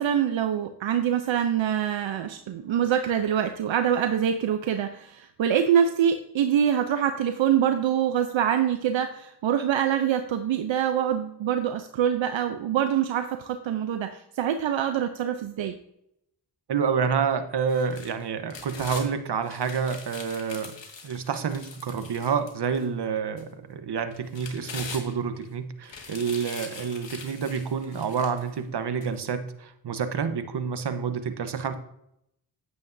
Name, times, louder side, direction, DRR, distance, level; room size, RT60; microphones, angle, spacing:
voice 1, 0.0-15.8, right 9 dB, 75° right, 8 dB, 0.7 m, -25 dB
voice 2, 16.7-20.7 21.0-31.7, right 6 dB, 60° right, 9 dB, 1.1 m, -28 dB
sound 1, 17.7-19.1 19.5-22.8 23.4-23.5 24.1-25.4 25.8-28.5 29.0-29.1, left 4 dB, 70° left, 1.9 m, -42 dB
9.5 x 8.8 x 2.7 m, 0.78 s
cardioid pair, 50°, 46 cm